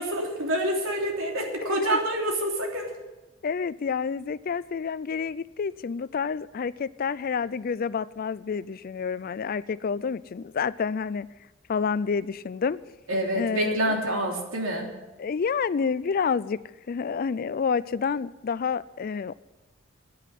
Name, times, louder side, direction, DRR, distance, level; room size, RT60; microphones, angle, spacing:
voice 1, 0.0-2.9 13.1-14.9, right 1 dB, 80° right, 0 dB, 3.2 m, -27 dB
voice 2, 1.6-2.0 3.4-11.3 11.7-12.8 13.4-13.8 15.2-16.6 16.9-19.3, left 6 dB, 45° left, 18 dB, 0.4 m, -29 dB
10.0 x 9.6 x 9.7 m, 1.1 s
head